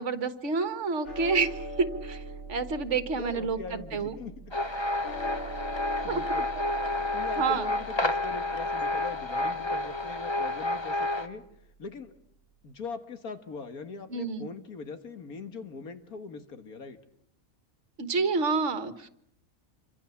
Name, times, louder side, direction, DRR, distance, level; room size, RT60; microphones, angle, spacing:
voice 1, 0.0-2.2 2.5-4.2 6.1-6.2 7.4-7.7 14.1-14.5 18.0-19.1, right 4 dB, 55° right, 11 dB, 1.8 m, -29 dB
sound 1, 1.0-11.5, right 1 dB, 55° left, 2.5 m, -43 dB
voice 2, 3.2-4.3 6.0-6.5 7.1-11.4 11.8-12.1 12.6-17.0, left 4 dB, 90° left, 8 dB, 2.1 m, -41 dB
sound 2, 4.5-11.3, left 2 dB, 20° left, 1.3 m, -30 dB
27.5 x 25.5 x 7.2 m, 0.73 s
omnidirectional pair, 1.5 m